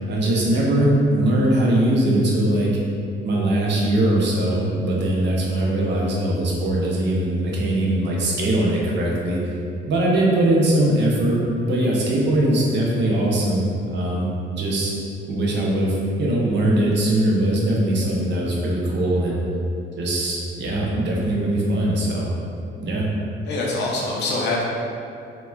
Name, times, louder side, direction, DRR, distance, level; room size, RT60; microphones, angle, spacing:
voice 1, 0.1-2.7 3.2-9.4 9.9-11.4 11.6-14.3 14.5-14.9 15.3-19.4 20.0-22.3 22.8-23.0, right 1 dB, 65° right, -4 dB, 0.6 m, -21 dB
voice 2, 23.5-24.6, left 2 dB, 60° left, -4 dB, 0.5 m, -24 dB
2.9 x 2.1 x 2.3 m, 2.5 s
cardioid pair, 90°, 20 cm